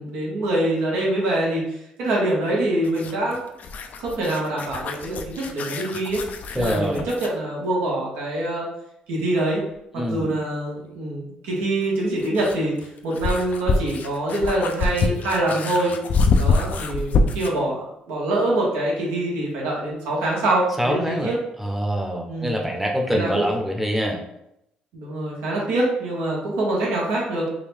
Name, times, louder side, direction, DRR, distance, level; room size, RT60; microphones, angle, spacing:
voice 1, 0.0-3.4 4.0-6.2 6.6-8.7 9.1-9.6 10.1-15.9 16.4-21.4 22.3-22.5 23.1-23.4 24.9-27.5, right 1 dB, 85° right, -4 dB, 1.2 m, -24 dB
sound 1, 2.8-7.4 9.7-9.8 11.8-17.6, left 3 dB, 60° left, 0.4 m, -25 dB
voice 2, 6.5-7.1 9.9-10.3 20.8-24.2, equal, 5° right, 1 dB, 0.7 m, -25 dB
3.7 x 2.2 x 3.4 m, 0.81 s
supercardioid pair, 70°, 3 cm